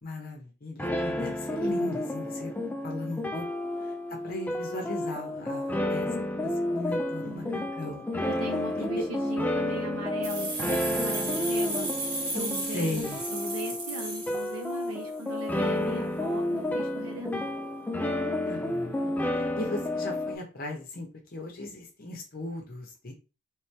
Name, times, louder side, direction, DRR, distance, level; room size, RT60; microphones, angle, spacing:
voice 1, 0.0-2.5 2.8-3.4 3.8-6.1 6.3-8.0 8.8-8.9 12.7-13.2 18.4-23.1, left 2 dB, 40° left, 2 dB, 0.8 m, -37 dB
sound 1, 0.8-20.4, left 1 dB, 10° left, 0.3 m, -31 dB
voice 2, 7.2-7.7 8.3-11.9 12.3-17.6, right 1 dB, 80° right, 2 dB, 1.0 m, -39 dB
sound 2, 10.2-15.0, right 2 dB, 50° right, 1.2 m, -34 dB
3.3 x 3.1 x 3.3 m, 0.32 s
head